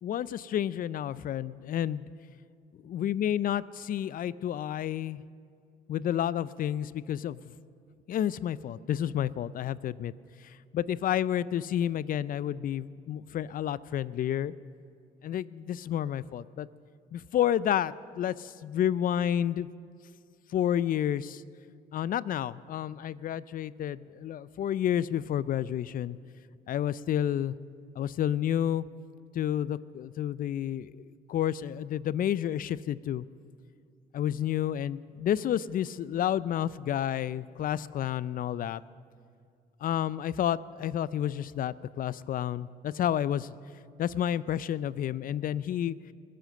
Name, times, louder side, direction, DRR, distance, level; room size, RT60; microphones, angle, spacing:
voice 1, 0.0-2.0 2.8-5.2 5.9-7.4 8.1-10.1 10.4-14.5 15.2-16.7 17.1-19.7 20.5-21.4 21.9-26.2 26.7-27.5 28.0-28.8 29.3-31.0 31.3-33.3 34.1-38.8 39.8-43.5 44.0-46.0, left 10 dB, 55° left, 18 dB, 0.4 m, -30 dB
20.5 x 7.7 x 6.5 m, 2.3 s
cardioid pair, 80°, 18 cm